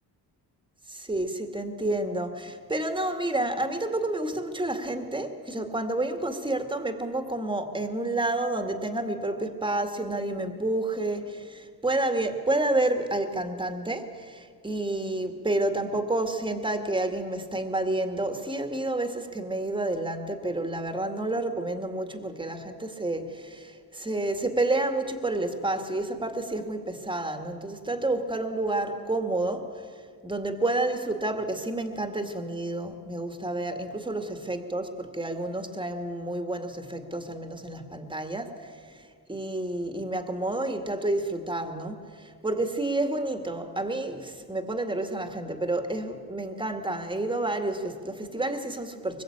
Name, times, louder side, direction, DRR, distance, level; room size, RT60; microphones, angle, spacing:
voice 1, 0.9-29.8 30.2-38.7 39.3-49.2, right 2 dB, 10° right, 2.1 m, -29 dB
24.0 x 21.5 x 8.7 m
cardioid pair, 95°, 40 cm